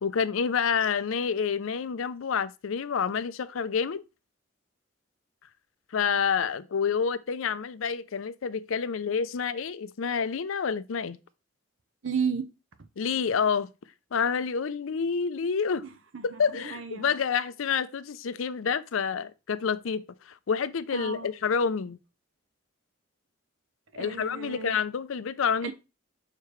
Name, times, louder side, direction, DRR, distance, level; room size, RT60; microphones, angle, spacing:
voice 1, 0.0-4.0 5.9-11.2 13.0-13.7 14.1-15.9 16.2-22.0 24.0-25.7, left 6 dB, 80° left, 0.5 m, -28 dB
voice 2, 12.0-12.5 15.8-17.1 20.9-21.3 23.9-24.8 25.6-25.7, right 6 dB, 70° right, 0.8 m, -33 dB
6.6 x 4.6 x 3.1 m
head